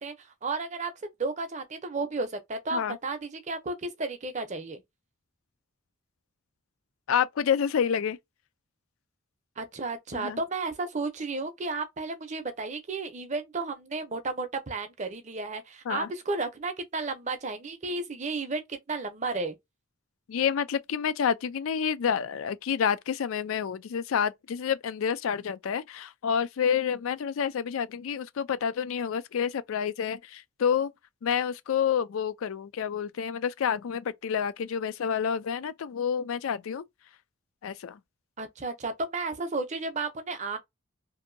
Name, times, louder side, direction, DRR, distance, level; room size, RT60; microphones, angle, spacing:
voice 1, 0.0-0.9 1.2-4.8 9.6-19.6 38.4-40.6, right 3 dB, 35° right, 0.6 m, -33 dB
voice 2, 7.1-8.2 10.1-10.4 15.9-16.1 20.3-30.9 31.2-36.8 37.6-38.0, left 7 dB, 75° left, 0.4 m, -28 dB
2.7 x 2.5 x 2.6 m
head